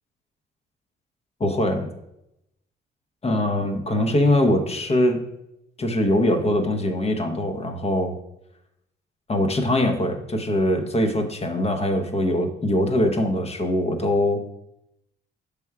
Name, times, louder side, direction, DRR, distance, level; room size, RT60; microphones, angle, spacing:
voice 1, 1.4-1.9 3.2-5.2 5.8-8.2 9.3-14.4, left 1 dB, 30° left, 4 dB, 0.8 m, -22 dB
5.9 x 3.5 x 4.7 m, 0.83 s
cardioid pair, 90°, 20 cm